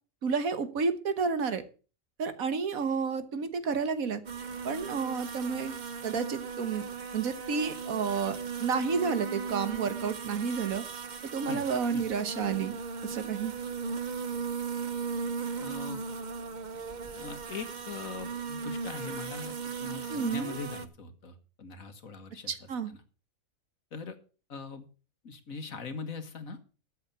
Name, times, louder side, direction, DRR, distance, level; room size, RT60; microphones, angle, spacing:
voice 1, 0.2-1.6 2.2-4.2 4.7-5.7 6.0-6.8 7.1-10.8 11.2-12.7 13.0-13.5 20.1-20.6 22.5-22.9, right 5 dB, 85° right, 12 dB, 1.8 m, -31 dB
sound 1, 4.3-20.9, right 5 dB, 40° right, 0.9 m, -37 dB
voice 2, 15.6-16.0 17.1-22.5 22.9-23.0 23.9-24.2 24.5-24.9 25.2-26.6, left 4 dB, 80° left, 9 dB, 2.1 m, -41 dB
13.5 x 7.8 x 6.9 m, 0.36 s
omnidirectional pair, 1.4 m